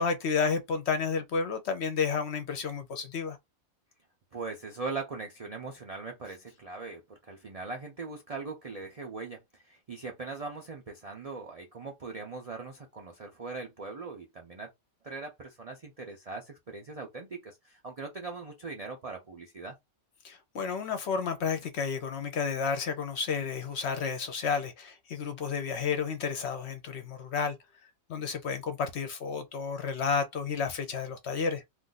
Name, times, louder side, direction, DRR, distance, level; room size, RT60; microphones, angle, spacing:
voice 1, 0.0-3.4 20.2-27.6 28.1-31.6, left 5 dB, 65° left, 0.7 m, -31 dB
voice 2, 4.3-14.7 15.0-19.8, right 4 dB, 70° right, 0.3 m, -40 dB
2.5 x 2.5 x 3.8 m
omnidirectional pair, 1.5 m